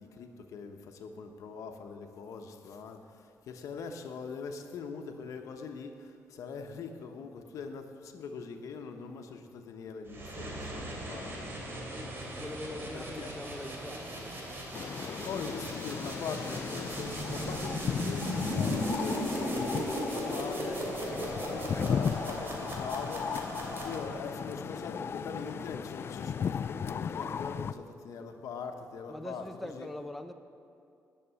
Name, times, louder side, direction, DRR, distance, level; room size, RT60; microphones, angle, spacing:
voice 1, 0.0-3.0 3.5-5.9 6.4-7.9 8.1-11.6 12.9-13.3 15.2-20.8 21.5-23.2 23.7-29.9, left 5 dB, 75° left, 5 dB, 1.0 m, -42 dB
sound 1, 10.1-24.4, right 1 dB, 40° right, 3.1 m, -37 dB
voice 2, 11.9-14.4 21.1-21.3 29.1-30.3, left 1 dB, ahead, 6 dB, 0.7 m, -43 dB
sound 2, 14.7-27.7, left 7 dB, 45° left, 0.4 m, -36 dB
sound 3, 16.4-21.4, right 3 dB, 25° right, 1.5 m, -51 dB
11.0 x 6.7 x 8.4 m, 2.5 s
cardioid pair, 90°, 6 cm